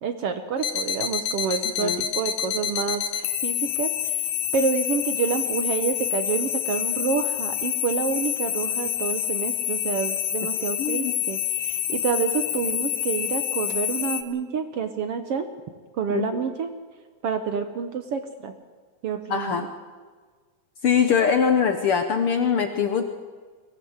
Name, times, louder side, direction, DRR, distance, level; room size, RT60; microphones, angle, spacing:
voice 1, 0.0-4.2 4.5-15.5 16.0-16.7 17.2-18.5 19.0-19.7, right 6 dB, 60° right, 8 dB, 1.7 m, -28 dB
sound 1, 0.6-14.2, left 10 dB, 80° left, 2.6 m, -27 dB
voice 2, 10.8-11.1 16.1-16.4 19.3-19.6 20.8-23.0, left 7 dB, 60° left, 7 dB, 1.6 m, -22 dB
22.5 x 17.0 x 8.0 m, 1.5 s
omnidirectional pair, 3.5 m